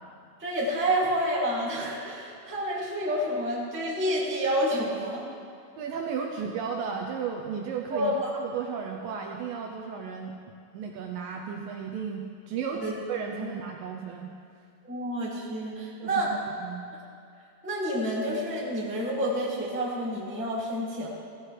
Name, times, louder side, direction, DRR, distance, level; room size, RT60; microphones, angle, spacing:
voice 1, 0.4-5.3 7.9-8.1 12.8-12.9 14.8-16.3 17.6-21.1, equal, 5° right, -6 dB, 1.2 m, -29 dB
voice 2, 5.8-10.4 10.7-12.8 13.1-14.3 16.0-16.3 16.6-16.9, right 6 dB, 80° right, 1 dB, 2.1 m, -34 dB
16.5 x 15.0 x 3.3 m, 2.4 s
omnidirectional pair, 4.6 m